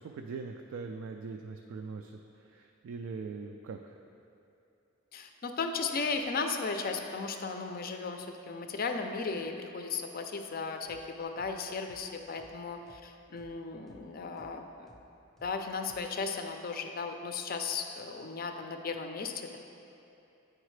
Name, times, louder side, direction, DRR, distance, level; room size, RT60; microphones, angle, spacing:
voice 1, 0.0-2.1 2.4-4.0, right 4 dB, 75° right, 4 dB, 0.3 m, -41 dB
voice 2, 5.1-14.9 15.4-19.6, left 4 dB, 45° left, 5 dB, 0.4 m, -36 dB
sound 1, 10.9-11.0 11.4-11.5 11.9-12.0 12.4-12.5 12.9-13.0 13.4-13.5 13.9-14.0 14.4-14.5 14.9-15.0 15.4-15.5 15.9-16.0, left 1 dB, ahead, 0.5 m, -58 dB
8.8 x 4.8 x 3.2 m, 2.7 s
head